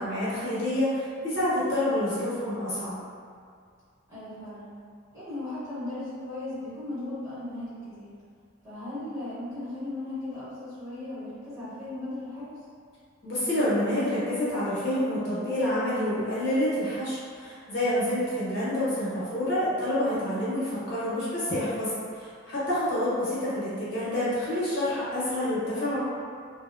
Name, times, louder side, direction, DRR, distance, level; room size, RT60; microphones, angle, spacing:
voice 1, 0.0-3.0 13.2-26.0, left 1 dB, 55° left, -10 dB, 0.8 m, -28 dB
voice 2, 4.1-4.7 5.1-8.1 8.6-12.6, left 2 dB, 15° right, -14 dB, 0.9 m, -37 dB
2.7 x 2.0 x 2.4 m, 2.2 s
head